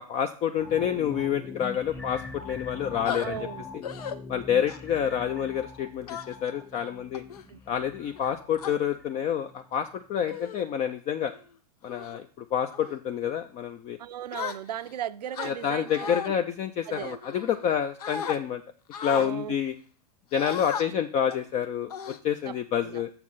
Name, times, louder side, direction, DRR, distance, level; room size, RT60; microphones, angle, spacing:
voice 1, 0.1-3.5 4.3-7.2 7.7-11.3 11.8-14.0 15.4-18.6 19.0-19.7 20.3-23.1, left 8 dB, 35° left, 0.6 m, -28 dB
sound 1, 0.6-9.9 10.3-10.4, left 3 dB, 10° left, 1.1 m, -43 dB
sound 2, 3.1-3.3 3.8-4.2 4.7-5.0 6.1-6.5 7.1-7.4 8.2-8.7 9.6-9.8 10.3-10.6 11.1-11.4 11.9-12.2 12.7-13.0 14.3-14.9 15.3-16.3 16.9-17.7 18.0-18.4 18.9-19.3 20.3-20.8 21.3-21.5 21.9-22.6, left 7 dB, 70° left, 0.8 m, -36 dB
voice 2, 3.2-3.6 7.5-7.6 14.0-16.1 16.9-17.2 19.2-19.5 22.5-22.6 22.8-23.0, right 10 dB, 80° right, 0.5 m, -36 dB
6.7 x 6.0 x 5.6 m
hypercardioid pair, 100°, 20 cm